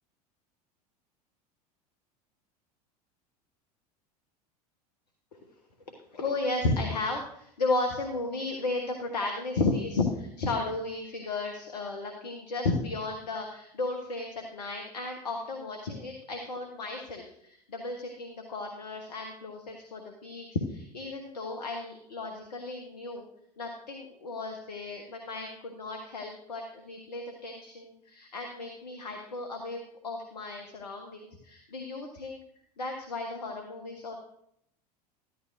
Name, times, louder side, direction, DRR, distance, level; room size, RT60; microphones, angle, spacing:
voice 1, 5.9-23.2 23.6-32.4 32.8-34.2, left 3 dB, 80° left, 4 dB, 1.3 m, -34 dB
14.0 x 11.5 x 2.6 m, 0.74 s
hypercardioid pair, 80°, 20 cm